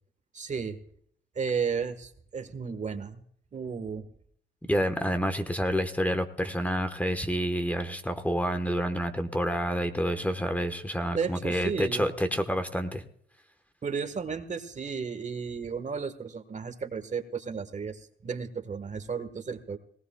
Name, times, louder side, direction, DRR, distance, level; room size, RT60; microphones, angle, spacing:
voice 1, 0.3-0.8 1.3-3.2 3.5-4.1 11.1-12.1 13.8-19.8, right 6 dB, 35° right, 10 dB, 1.4 m, -33 dB
voice 2, 4.7-13.0, equal, 5° left, 8 dB, 1.2 m, -28 dB
19.0 x 17.5 x 2.3 m, 0.64 s
cardioid pair, 90°, 20 cm